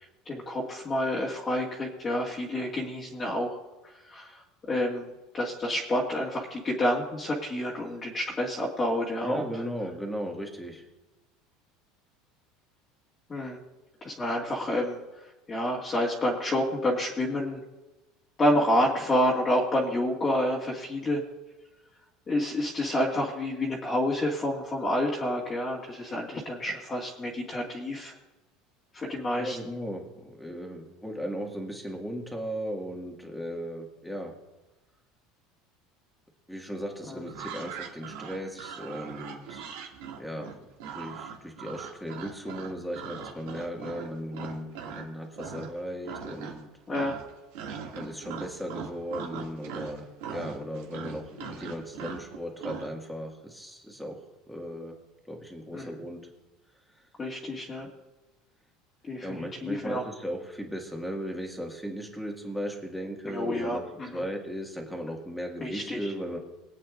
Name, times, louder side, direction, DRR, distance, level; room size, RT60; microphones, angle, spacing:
voice 1, 0.3-3.6 4.1-4.4 4.7-5.1 5.3-9.6 13.3-13.6 14.0-15.0 15.5-17.6 18.4-21.2 22.3-28.1 28.9-29.6 37.1-37.2 46.9-47.2 51.4-51.5 55.7-55.9 57.2-57.9 59.1-60.0 63.3-64.2 65.6-66.1, left 1 dB, 20° left, -5 dB, 2.0 m, -29 dB
voice 2, 9.2-10.8 29.4-34.3 36.5-39.7 40.2-40.5 40.9-46.7 47.9-54.2 54.5-55.0 55.3-56.3 59.2-63.8 64.1-66.4, equal, ahead, 1 dB, 1.9 m, -36 dB
sound 1, 37.3-45.1 45.4-45.8 46.0-46.7 46.9-52.9, right 7 dB, 85° right, 2.2 m, -40 dB
23.5 x 8.6 x 2.5 m, 1.1 s
supercardioid pair, 135°, 0 cm